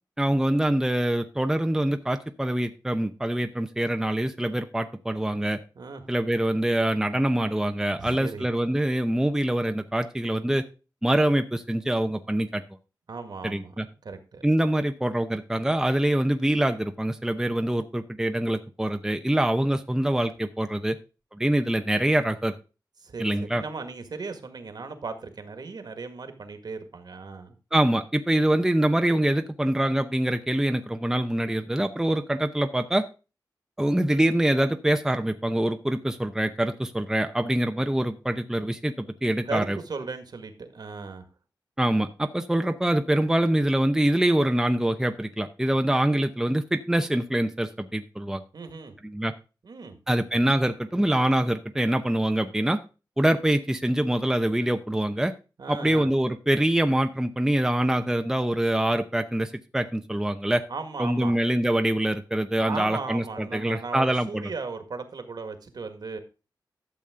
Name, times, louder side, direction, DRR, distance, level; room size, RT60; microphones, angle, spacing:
voice 1, 0.2-5.6 6.1-10.7 11.0-12.6 13.4-13.8 14.4-21.0 21.3-22.6 23.2-23.6 27.7-33.0 33.8-39.8 41.8-48.4 49.0-49.3 50.1-52.8 53.2-55.3 55.7-60.6 61.0-64.5, right 1 dB, 5° right, 6 dB, 0.7 m, -24 dB
voice 2, 8.0-8.5 13.1-14.4 23.0-23.3 23.5-27.6 39.5-41.3 48.5-48.9 49.6-50.0 55.6-56.1 60.7-61.4 62.6-66.2, right 4 dB, 65° right, 8 dB, 1.8 m, -37 dB
12.0 x 7.2 x 3.7 m, 0.32 s
wide cardioid pair, 115°, 8 cm